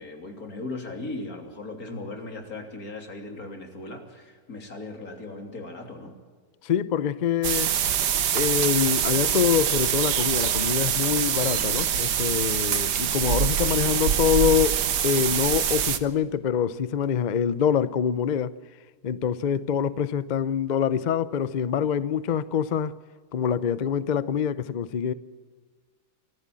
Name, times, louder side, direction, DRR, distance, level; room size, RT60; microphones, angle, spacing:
voice 1, 0.0-6.2, left 2 dB, 60° left, 3.5 m, -38 dB
voice 2, 6.6-7.7 8.3-18.5 19.0-22.9 23.3-25.1, left 8 dB, 80° left, 0.4 m, -25 dB
sound 1, 7.4-16.0, right 9 dB, 80° right, 1.6 m, -24 dB
24.5 x 15.5 x 7.5 m
omnidirectional pair, 1.8 m